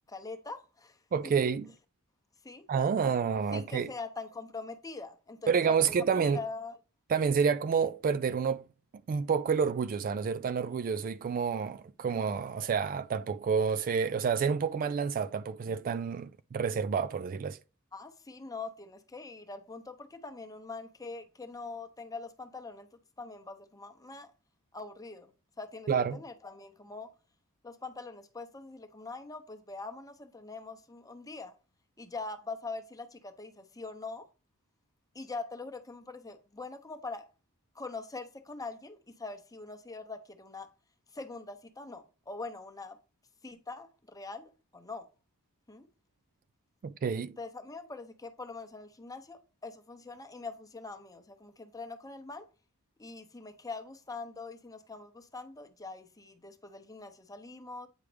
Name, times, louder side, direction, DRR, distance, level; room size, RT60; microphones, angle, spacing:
voice 1, 0.1-1.0 2.4-2.6 3.5-5.8 6.1-6.7 17.9-22.9 23.2-24.3 24.7-25.3 25.6-27.1 27.6-31.5 32.0-34.3 35.1-37.3 37.7-40.7 41.1-43.0 43.4-45.1 45.7-45.9 47.4-52.5 53.0-57.9, left 3 dB, 15° left, 0.8 m, -43 dB
voice 2, 1.1-1.7 2.7-3.9 5.5-6.4 7.1-8.6 9.1-17.6 25.9-26.2 46.8-47.4, right 6 dB, 40° right, 0.3 m, -29 dB
9.0 x 4.8 x 3.4 m
head